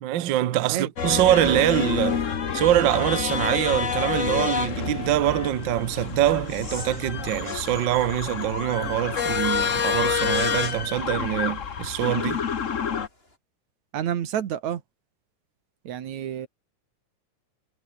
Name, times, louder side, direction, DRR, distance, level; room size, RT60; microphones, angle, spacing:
voice 1, 0.0-2.2 2.5-12.4, right 13 dB, 90° right, 1.0 m, -24 dB
voice 2, 0.5-0.9 13.9-14.8 15.8-16.5, right 10 dB, 70° right, 3.0 m, -29 dB
sound 1, 1.0-13.1, left 7 dB, 85° left, 0.6 m, -28 dB
sound 2, 5.9-13.4, left 1 dB, 15° left, 7.4 m, -47 dB
omnidirectional pair, 3.5 m